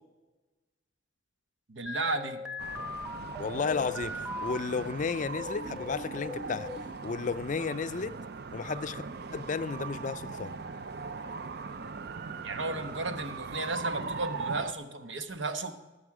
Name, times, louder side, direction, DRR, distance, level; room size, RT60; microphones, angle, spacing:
voice 1, 1.7-2.4 12.4-15.7, right 3 dB, 85° right, 7 dB, 1.2 m, -34 dB
sound 1, 1.9-4.9 5.4-7.0, left 2 dB, 5° right, 0.8 m, -39 dB
sound 2, 2.6-14.7, right 4 dB, 55° right, 0.5 m, -40 dB
voice 2, 3.4-6.7 7.0-8.1 8.5-9.0 9.3-10.5, left 4 dB, 40° left, 13 dB, 0.4 m, -33 dB
19.0 x 7.2 x 4.8 m, 1.1 s
head